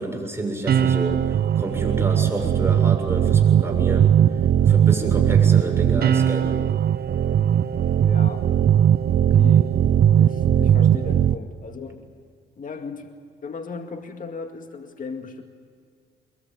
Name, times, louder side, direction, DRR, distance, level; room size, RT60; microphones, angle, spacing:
voice 1, 0.0-4.2 4.6-6.6, right 2 dB, 10° right, 2 dB, 7.1 m, -29 dB
sound 1, 0.7-11.3, right 9 dB, 50° right, 0.7 m, -18 dB
voice 2, 8.0-8.5 9.2-9.7 10.2-12.0 12.6-13.1 13.4-15.4, left 4 dB, 40° left, 5 dB, 2.1 m, -36 dB
23.0 x 22.5 x 9.2 m, 2.1 s
cardioid pair, 90°, 20 cm